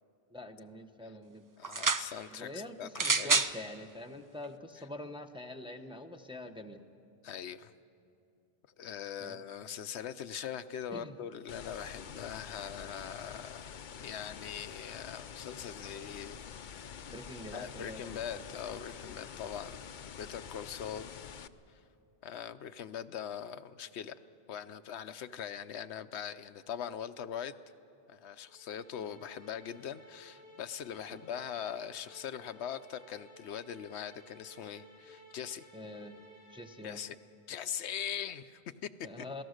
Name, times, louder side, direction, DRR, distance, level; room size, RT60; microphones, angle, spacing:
voice 1, 0.3-1.5 2.3-6.8 9.2-9.4 10.9-11.2 17.1-18.2 29.1-29.2 31.1-31.2 35.7-36.2 36.5-37.0 39.0-39.4, left 1 dB, 5° right, 4 dB, 0.7 m, -45 dB
voice 2, 1.6-3.4 7.2-7.7 8.8-16.4 16.7-17.0 17.5-19.8 20.1-21.2 22.2-24.2 24.5-27.5 28.1-35.7 36.8-37.2 37.5-38.9 39.2-39.3, left 8 dB, 85° left, 11 dB, 0.9 m, -41 dB
sound 1, 1.6-2.1 2.9-3.5 4.4-4.5, right 4 dB, 30° right, 0.3 m, -28 dB
sound 2, 11.5-21.5, left 7 dB, 55° left, 0.7 m, -47 dB
sound 3, 28.4-37.2, left 1 dB, 85° right, 3.7 m, -58 dB
27.5 x 17.5 x 6.5 m, 2.5 s
omnidirectional pair, 1.1 m